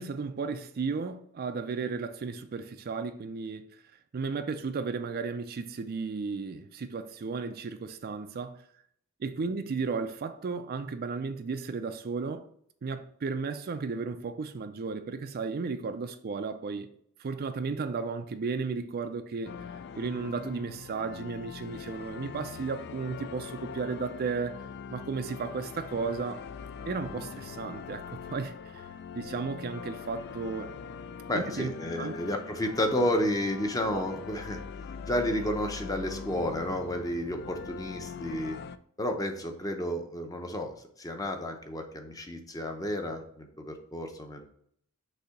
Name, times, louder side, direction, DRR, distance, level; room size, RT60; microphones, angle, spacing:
voice 1, 0.0-3.7 4.1-8.6 9.2-12.5 12.8-16.9 17.2-19.5 19.9-24.6 24.9-26.4 26.9-30.7 31.3-31.7 32.0-32.2 33.8-34.0, right 4 dB, 45° right, 0.4 m, -34 dB
sound 1, 19.4-38.8, left 6 dB, 50° left, 0.3 m, -42 dB
voice 2, 31.3-34.6 35.1-38.6 39.0-44.4, left 1 dB, 15° left, 0.7 m, -31 dB
6.5 x 2.7 x 5.7 m
head